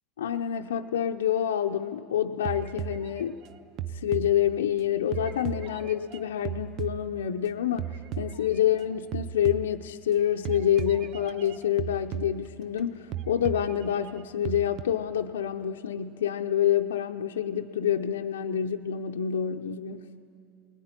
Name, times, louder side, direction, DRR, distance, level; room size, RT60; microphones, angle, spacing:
voice 1, 0.2-3.4 3.9-20.1, left 10 dB, 90° left, 3 dB, 0.6 m, -27 dB
sound 1, 2.4-4.8 5.1-7.5 7.8-8.9 9.1-10.1 10.4-12.8 13.1-14.8, right 10 dB, 50° right, 0.7 m, -37 dB
21.0 x 18.5 x 9.6 m, 2.6 s
hypercardioid pair, 90°, 0 cm